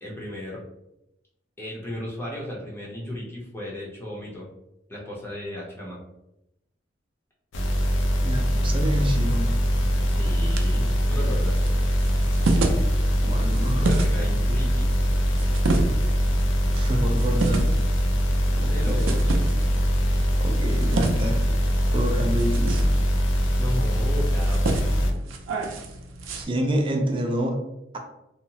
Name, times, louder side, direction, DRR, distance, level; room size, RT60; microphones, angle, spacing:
voice 1, 0.0-0.6 1.6-4.5 4.9-6.0 10.0-11.7 13.8-14.9 18.7-19.4 23.6-25.2, left 1 dB, 10° left, -5 dB, 0.6 m, -35 dB
sound 1, 7.5-25.1, equal, 75° left, 0.4 m, -22 dB
voice 2, 8.2-9.6 13.0-13.9 16.7-17.8 18.6-19.1 20.4-21.4 21.8-22.9 26.3-27.6, equal, 25° right, 3 dB, 0.4 m, -28 dB
sound 2, 9.6-26.4, right 2 dB, 90° right, 0.4 m, -31 dB
2.8 x 2.0 x 2.8 m, 0.88 s
head